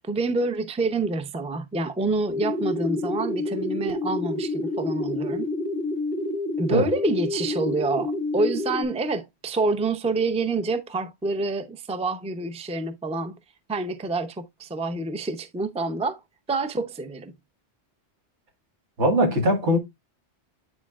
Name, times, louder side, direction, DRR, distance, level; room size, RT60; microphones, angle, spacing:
voice 1, 0.1-5.5 6.6-13.3 13.7-16.2 16.5-17.3, right 2 dB, 10° right, 0.4 m, -27 dB
sound 1, 2.3-8.8, left 2 dB, 60° right, 1.1 m, -28 dB
voice 2, 19.0-19.8, equal, 85° right, 1.9 m, -20 dB
9.7 x 4.4 x 2.3 m
omnidirectional pair, 1.1 m